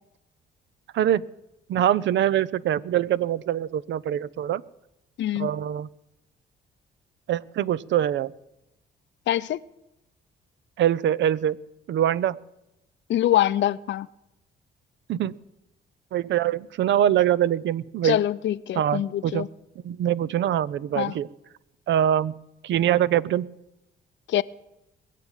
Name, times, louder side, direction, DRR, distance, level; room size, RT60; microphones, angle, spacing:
voice 1, 1.7-4.6 5.4-5.9 7.3-8.3 10.8-11.6 11.9-12.4 15.1-15.3 16.1-18.2 18.7-19.5 19.8-21.3 21.9-22.3 22.6-23.5, right 11 dB, 70° right, 0.6 m, -23 dB
voice 2, 5.2-5.5 9.3-9.6 13.1-14.1 18.0-19.5 21.0-21.1 24.3-24.4, left 12 dB, 65° left, 0.6 m, -24 dB
21.0 x 7.5 x 9.1 m
cardioid pair, 90°, 20 cm